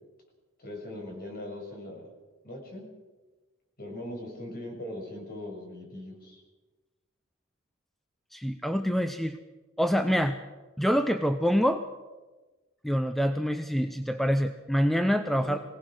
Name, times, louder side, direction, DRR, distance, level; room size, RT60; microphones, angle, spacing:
voice 1, 0.6-2.1 2.4-2.8 3.8-6.4 15.4-15.6, left 1 dB, 45° left, 0 dB, 6.3 m, -40 dB
voice 2, 8.3-9.4 9.8-10.4 10.8-11.8 12.8-15.7, equal, ahead, 8 dB, 0.6 m, -26 dB
23.0 x 17.5 x 6.4 m, 1.2 s
head